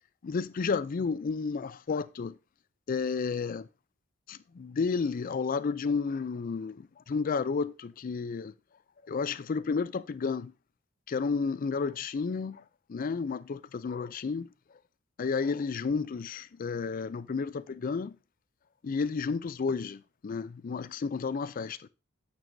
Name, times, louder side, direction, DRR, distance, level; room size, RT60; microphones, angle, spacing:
voice 1, 0.2-2.4 2.9-3.7 4.3-8.5 9.0-10.5 11.1-12.6 12.9-14.5 15.2-18.2 18.8-21.9, left 5 dB, 45° left, 0.4 m, -32 dB
9.0 x 7.0 x 2.6 m
head